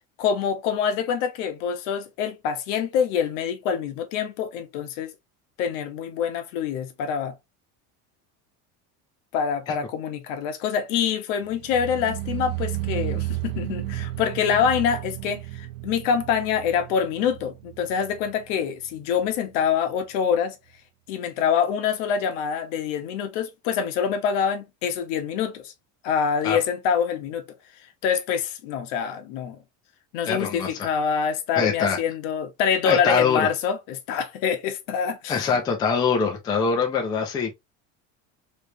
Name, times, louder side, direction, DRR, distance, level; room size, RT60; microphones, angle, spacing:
voice 1, 0.2-5.1 5.6-7.4 9.3-20.6 21.1-25.7 26.0-27.4 28.0-29.6 30.1-35.4, left 7 dB, 75° left, 1.0 m, -25 dB
sound 1, 11.5-18.6 18.8-19.3 19.6-19.7, right 16 dB, 60° right, 0.7 m, -33 dB
voice 2, 30.3-30.7 31.6-32.0 32.8-33.5 35.3-37.6, left 5 dB, 10° left, 0.3 m, -23 dB
3.3 x 3.1 x 2.7 m
cardioid pair, 180°, 37 cm